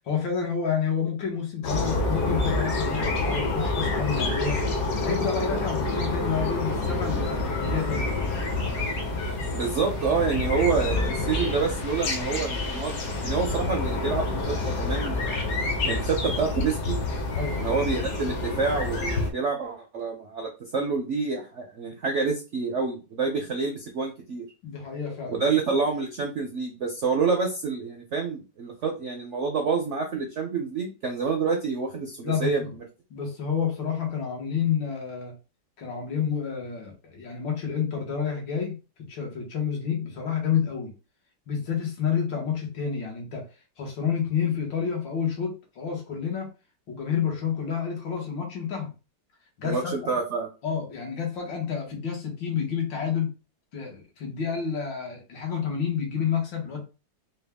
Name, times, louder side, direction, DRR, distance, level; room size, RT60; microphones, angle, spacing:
voice 1, 0.1-4.6 5.0-8.2 17.3-17.8 24.6-25.6 32.2-32.7 33.1-35.3 35.8-40.9 41.5-43.5 43.8-46.5 46.9-48.9 49.6-50.2 50.6-53.3 53.7-56.8, left 7 dB, 80° left, 0 dB, 2.1 m, -29 dB
sound 1, 1.6-19.3, left 2 dB, 55° left, 1.2 m, -28 dB
voice 2, 9.5-15.3 15.8-17.0 17.6-24.4 25.3-32.7 49.6-50.5, right 5 dB, 70° right, 2 dB, 0.7 m, -28 dB
4.4 x 2.3 x 3.4 m, 0.31 s
omnidirectional pair, 2.0 m